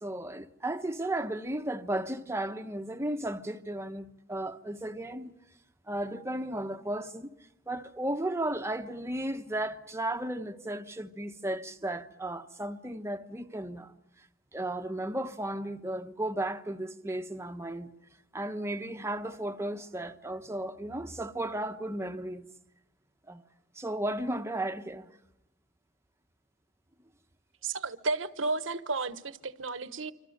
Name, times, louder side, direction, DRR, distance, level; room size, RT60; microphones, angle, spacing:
voice 1, 0.0-5.3 5.9-7.3 7.7-14.2 14.5-17.9 18.3-22.5 23.3-23.4 23.7-25.1, right 1 dB, 15° right, 1.1 m, -34 dB
voice 2, 27.6-30.1, right 3 dB, 65° right, 1.3 m, -32 dB
26.5 x 26.5 x 6.7 m
head